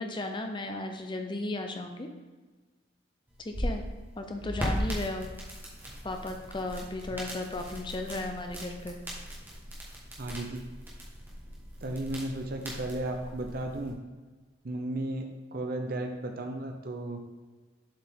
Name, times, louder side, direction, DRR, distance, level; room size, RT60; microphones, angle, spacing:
voice 1, 0.0-2.1 3.4-3.8 4.2-5.3 6.0-9.0, left 2 dB, 25° left, 4 dB, 0.6 m, -35 dB
sound 1, 3.3-13.9, equal, 10° right, 1.4 m, -38 dB
voice 2, 10.2-10.6 11.8-14.0 14.6-15.2 15.5-17.2, right 1 dB, 50° right, 3 dB, 0.6 m, -34 dB
7.4 x 4.8 x 3.6 m, 1.3 s
head